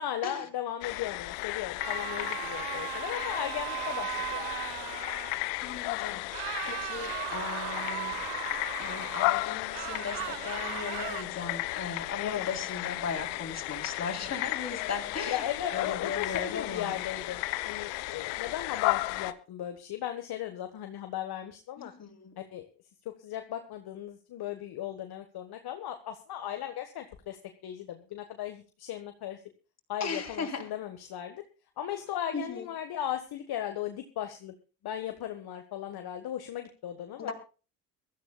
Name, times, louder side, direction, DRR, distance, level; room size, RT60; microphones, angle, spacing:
voice 1, 0.0-4.5 12.2-12.5 15.3-21.9 22.4-22.7 23.0-27.4 27.6-29.4 29.9-31.4 31.8-34.5 34.8-37.3, left 11 dB, 55° left, 6 dB, 1.5 m, -37 dB
sound 1, 0.8-19.3, left 19 dB, 70° left, 0.9 m, -34 dB
sound 2, 1.8-5.4 6.3-9.2 9.7-11.2, right 22 dB, 70° right, 0.6 m, -37 dB
voice 2, 5.6-8.2 8.8-17.0 21.8-22.4 30.0-30.7 32.3-32.7 37.2-37.3, left 5 dB, 35° left, 2 dB, 3.9 m, -37 dB
23.0 x 13.0 x 2.3 m, 0.34 s
hypercardioid pair, 55°, 46 cm